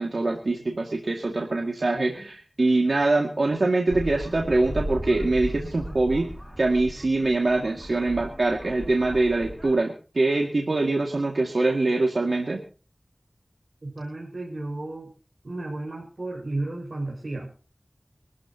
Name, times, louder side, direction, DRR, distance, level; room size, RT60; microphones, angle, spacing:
voice 1, 0.0-6.3 6.6-12.6, right 2 dB, 85° right, 1 dB, 2.1 m, -24 dB
sound 1, 3.9-9.8, equal, ahead, 6.3 m, -36 dB
voice 2, 13.8-15.1 15.4-17.5, right 2 dB, 65° right, -1 dB, 5.1 m, -33 dB
24.5 x 13.5 x 2.9 m, 0.37 s
wide cardioid pair, 55°, 0 cm